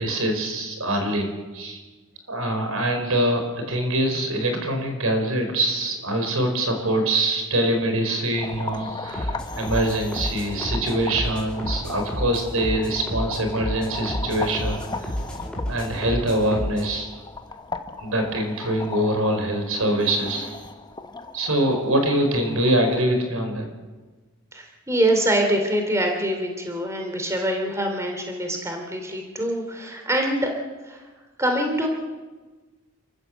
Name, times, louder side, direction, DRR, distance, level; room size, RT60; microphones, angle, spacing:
voice 1, 0.0-1.8 2.3-15.2 15.7-17.1 18.0-20.6 21.3-23.7, right 1 dB, 90° right, 5 dB, 5.2 m, -24 dB
sound 1, 8.3-23.0, left 3 dB, 20° left, 1.1 m, -37 dB
sound 2, 9.1-16.9, equal, 5° left, 5.5 m, -31 dB
voice 2, 24.5-30.5 30.8-31.1 31.4-31.9, right 1 dB, 15° right, 3 dB, 2.8 m, -24 dB
29.0 x 14.0 x 7.8 m, 1.3 s
head